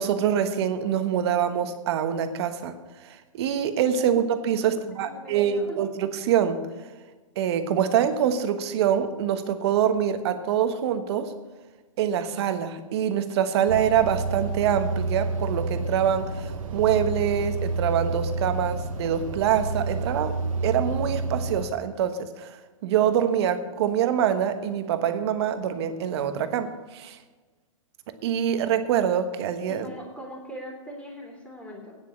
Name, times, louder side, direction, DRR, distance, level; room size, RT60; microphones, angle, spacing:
voice 1, 0.0-2.7 3.3-6.7 7.4-11.3 12.0-20.4 20.6-27.2 28.2-29.9, right 9 dB, 55° right, 9 dB, 1.3 m, -25 dB
voice 2, 4.6-5.9 29.7-32.0, equal, 5° left, 0 dB, 3.1 m, -41 dB
sound 1, 13.7-21.7, right 3 dB, 85° right, 1.4 m, -29 dB
9.6 x 7.5 x 8.5 m, 1.3 s
hypercardioid pair, 140°, 17 cm